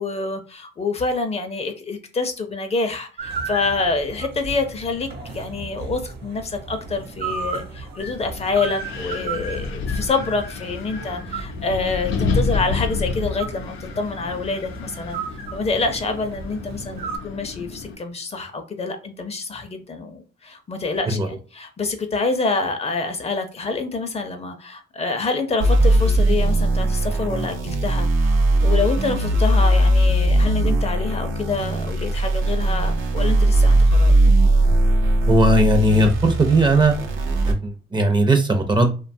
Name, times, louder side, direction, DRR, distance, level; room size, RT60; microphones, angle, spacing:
voice 1, 0.0-15.2 15.5-34.1, left 3 dB, 30° left, 0.5 m, -27 dB
sound 1, 3.2-17.2, right 4 dB, 55° right, 0.8 m, -34 dB
Wind, 8.0-18.0, left 4 dB, 90° left, 0.5 m, -30 dB
sound 2, 25.6-37.5, right 1 dB, 85° right, 0.6 m, -19 dB
voice 2, 35.3-36.9 37.5-38.9, right 1 dB, 25° right, 0.5 m, -18 dB
2.7 x 2.2 x 2.6 m
cardioid pair, 90°, 20 cm